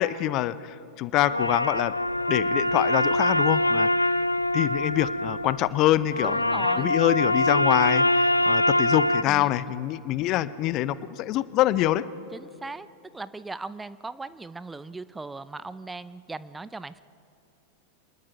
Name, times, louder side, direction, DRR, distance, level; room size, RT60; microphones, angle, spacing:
voice 1, 0.0-1.9 2.3-4.2 4.5-12.0, left 14 dB, 40° left, 18 dB, 0.6 m, -25 dB
sound 1, 1.2-9.2, left 1 dB, 85° left, 0.4 m, -24 dB
voice 2, 6.2-6.9 9.3-9.5 12.3-12.9 13.1-17.0, right 3 dB, 10° right, 16 dB, 0.5 m, -38 dB
25.5 x 20.0 x 5.5 m, 2.7 s
figure-of-eight pair, 90°, 0 cm